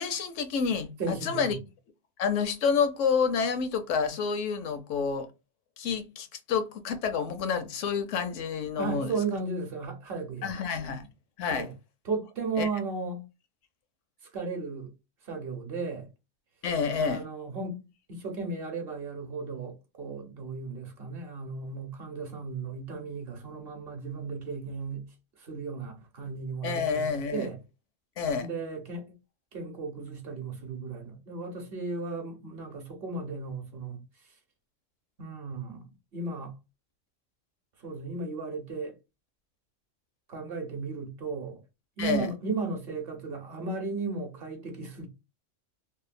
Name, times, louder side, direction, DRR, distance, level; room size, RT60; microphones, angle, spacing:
voice 1, 0.0-1.6 2.2-5.3 5.8-9.1 10.4-11.1 11.4-11.7 12.6-12.7 16.6-17.2 26.6-27.5 28.2-28.5 42.0-42.3, left 6 dB, 75° left, 0.9 m, -29 dB
voice 2, 1.0-1.5 8.8-10.6 11.5-11.7 12.0-13.2 14.3-14.9 15.2-16.1 17.0-17.8 18.1-25.0 25.4-27.0 27.3-27.6 28.4-29.1 29.5-34.0 35.2-36.5 37.8-39.0 40.3-41.6 42.0-45.1, right 4 dB, 55° right, 0.9 m, -35 dB
2.8 x 2.2 x 2.4 m
omnidirectional pair, 1.3 m